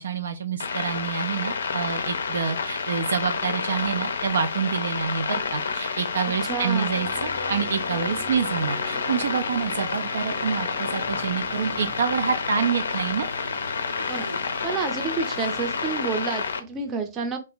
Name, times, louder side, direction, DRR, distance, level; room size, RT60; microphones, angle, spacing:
voice 1, 0.0-13.3, right 6 dB, 60° right, 0.4 m, -27 dB
Scrambled Telecommunications, 0.6-16.6, left 5 dB, 60° left, 0.5 m, -29 dB
voice 2, 6.4-6.9 14.1-14.3 14.6-17.4, right 5 dB, 20° right, 0.6 m, -29 dB
sound 1, 6.9-12.0, left 2 dB, 20° left, 0.7 m, -40 dB
sound 2, 7.3-15.9, right 1 dB, 85° right, 0.8 m, -43 dB
2.8 x 2.6 x 3.8 m
figure-of-eight pair, 125°, 0 cm